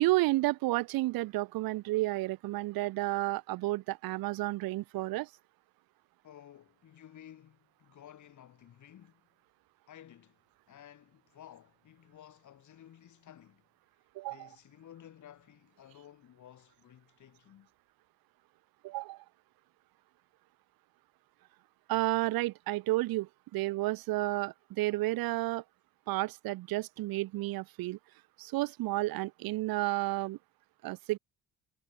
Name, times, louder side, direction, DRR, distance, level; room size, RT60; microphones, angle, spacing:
voice 1, 0.0-5.3 14.2-14.5 18.8-19.2 21.9-25.6 26.1-28.0 28.4-30.4 30.8-31.2, right 19 dB, 75° right, 0.7 m, -31 dB
voice 2, 6.2-9.2 9.9-10.4 10.7-13.6 14.2-17.7, left 11 dB, 55° left, 4.4 m, -54 dB
cardioid pair, 140°, 36 cm